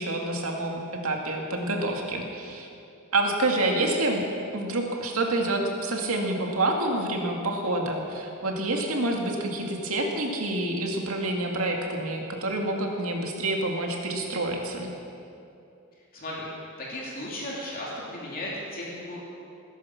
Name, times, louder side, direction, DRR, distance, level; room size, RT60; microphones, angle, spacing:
voice 1, 0.0-2.7 3.1-4.2 4.5-14.9, right 2 dB, 75° right, 1 dB, 2.3 m, -28 dB
voice 2, 16.1-16.5 16.8-19.2, left 1 dB, 45° left, -4 dB, 2.7 m, -35 dB
20.0 x 10.5 x 6.0 m, 2.7 s
head